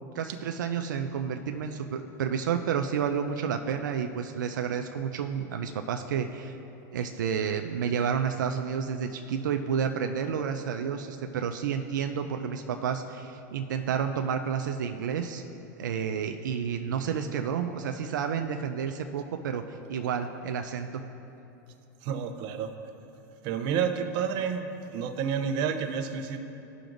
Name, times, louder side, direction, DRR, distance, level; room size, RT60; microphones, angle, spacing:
voice 1, 0.1-6.6 6.9-15.4 15.8-20.9, right 7 dB, 85° right, 5 dB, 0.5 m, -30 dB
voice 2, 22.0-22.7 23.4-26.4, right 7 dB, 50° right, 6 dB, 0.7 m, -30 dB
15.5 x 5.9 x 2.6 m, 2.8 s
hypercardioid pair, 120°, 10 cm